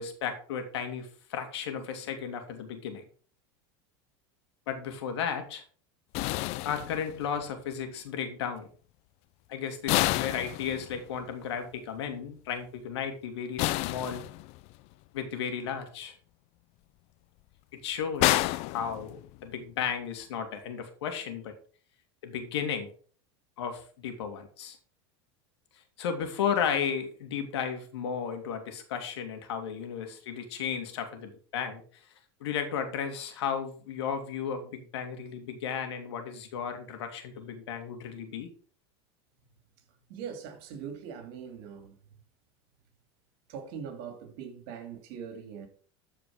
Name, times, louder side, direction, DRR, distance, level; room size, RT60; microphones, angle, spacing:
voice 1, 0.0-3.0 4.7-5.6 6.6-8.7 9.5-14.2 15.1-16.2 17.7-21.5 22.2-22.9 23.6-24.8 26.0-32.0 32.4-38.5, left 7 dB, 85° left, 2.5 m, -34 dB
sound 1, 6.1-7.4 9.9-11.2 13.6-14.8 18.2-19.5, left 19 dB, 50° left, 0.5 m, -29 dB
voice 2, 40.1-42.0 43.5-45.7, right 7 dB, 65° right, 2.8 m, -41 dB
13.5 x 5.0 x 4.9 m
supercardioid pair, 120°, 14 cm